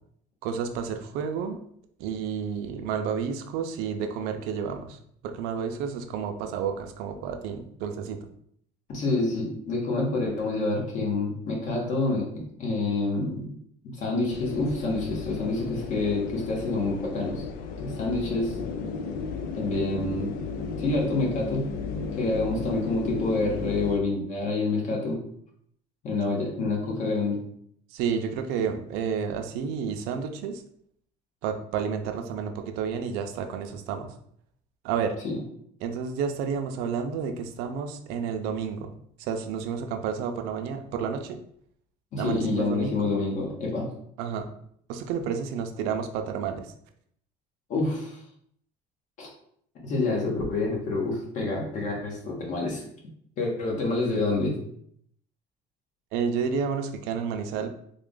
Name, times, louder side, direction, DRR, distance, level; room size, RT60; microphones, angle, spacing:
voice 1, 0.4-1.6 2.0-8.2 27.9-30.6 31.4-34.1 34.8-35.2 35.8-38.9 39.2-41.4 42.2-43.2 44.2-44.5 44.9-46.7 56.1-57.7, right 6 dB, 80° right, 6 dB, 0.5 m, -30 dB
voice 2, 8.9-13.5 14.0-17.4 17.8-18.5 19.5-20.3 20.8-21.6 22.1-25.2 26.0-27.4 35.2-35.3 42.1-43.9 47.7-48.2 49.2-49.3 49.8-52.8 53.4-54.6, left 3 dB, 55° left, -1 dB, 1.3 m, -27 dB
sound 1, 14.3-24.0, left 5 dB, 70° left, 0.5 m, -34 dB
3.5 x 2.4 x 3.7 m, 0.67 s
cardioid pair, 145°, 16 cm